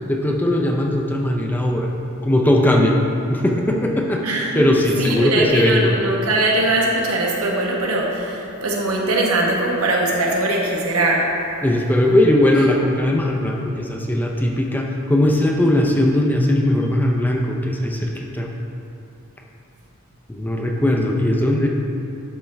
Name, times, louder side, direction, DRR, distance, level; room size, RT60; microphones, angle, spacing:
voice 1, 0.1-1.9 2.2-3.0 3.3-4.2 4.5-5.9 11.6-18.5 20.3-21.7, left 1 dB, 10° left, 0 dB, 0.4 m, -19 dB
voice 2, 4.2-11.3, right 2 dB, 80° right, -2 dB, 1.2 m, -21 dB
11.5 x 4.3 x 3.3 m, 2.7 s
head